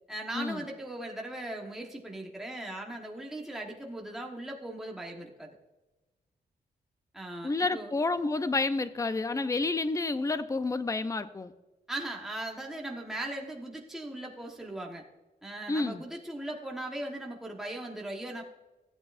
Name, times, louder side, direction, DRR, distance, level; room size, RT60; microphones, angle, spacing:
voice 1, 0.1-5.5 7.1-7.9 11.9-15.0 15.4-18.4, right 1 dB, ahead, 0 dB, 1.1 m, -38 dB
voice 2, 7.4-11.5 15.7-16.0, left 3 dB, 20° left, 12 dB, 0.5 m, -29 dB
14.5 x 8.8 x 2.5 m, 1.1 s
wide cardioid pair, 115°, 17 cm